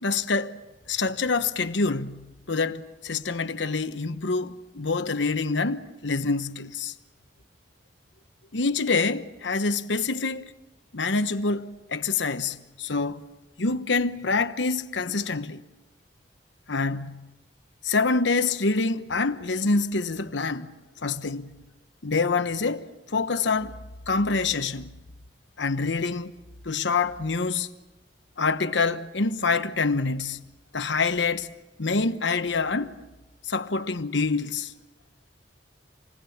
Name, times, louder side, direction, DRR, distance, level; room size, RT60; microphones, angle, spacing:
voice 1, 0.0-0.6 0.9-6.9 8.5-10.5 10.9-13.2 13.6-15.6 16.7-17.3 17.8-20.8 21.0-21.5 22.0-23.8 24.1-24.9 25.6-26.3 26.6-27.7 28.4-30.4 30.7-31.5 31.8-32.9 33.4-34.7, left 4 dB, 85° left, 1.1 m, -26 dB
28.0 x 20.0 x 7.2 m
head